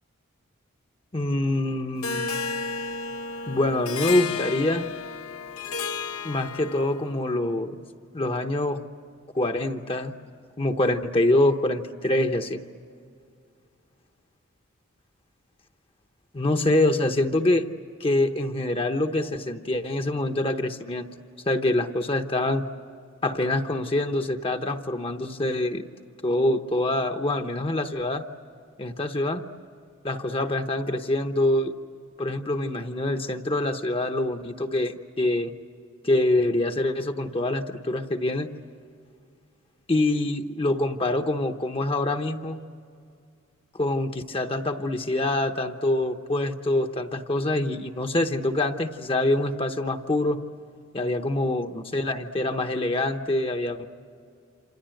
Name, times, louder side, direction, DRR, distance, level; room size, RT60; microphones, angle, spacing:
voice 1, 1.1-2.3 3.5-4.9 6.2-7.7 8.1-8.8 9.3-10.1 10.6-12.6 16.3-17.7 18.0-21.1 21.5-22.6 23.2-25.8 26.2-28.2 28.8-29.4 30.0-31.7 32.2-35.5 36.0-38.5 39.9-42.6 43.7-50.4 50.9-53.9, left 1 dB, 25° left, 7 dB, 0.9 m, -25 dB
Harp, 2.0-7.0, left 5 dB, 80° left, 1.0 m, -32 dB
28.0 x 27.5 x 7.8 m, 2.3 s
head